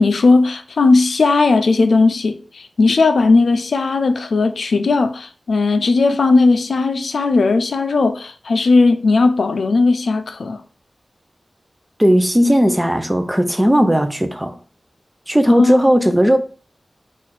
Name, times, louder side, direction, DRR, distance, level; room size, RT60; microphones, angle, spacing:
voice 1, 0.0-10.6 15.6-15.8, left 3 dB, 90° left, 0.4 m, -16 dB
voice 2, 12.0-14.6 15.3-16.4, equal, 15° right, 0.6 m, -15 dB
4.2 x 2.5 x 4.0 m
cardioid pair, 50°, 0 cm